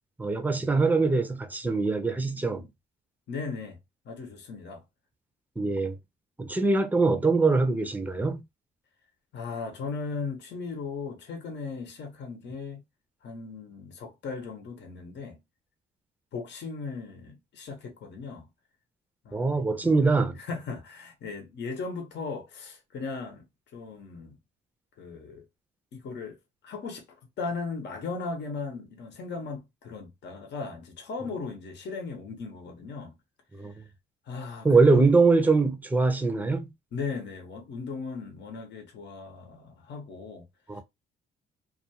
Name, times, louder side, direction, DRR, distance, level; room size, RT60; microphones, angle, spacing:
voice 1, 0.2-2.6 5.6-5.9 6.4-8.4 19.3-20.4 33.5-33.7 34.6-36.7 40.7-40.8, right 3 dB, 10° right, 0.5 m, -23 dB
voice 2, 3.3-3.8 4.0-4.8 9.3-12.8 13.2-15.4 16.3-18.5 19.2-19.6 20.4-23.5 23.7-24.4 25.0-25.4 25.9-26.4 26.6-33.1 33.6-33.9 34.3-35.0 36.9-40.4, left 4 dB, 60° left, 0.9 m, -37 dB
2.4 x 2.3 x 2.8 m
cardioid pair, 90°, 20 cm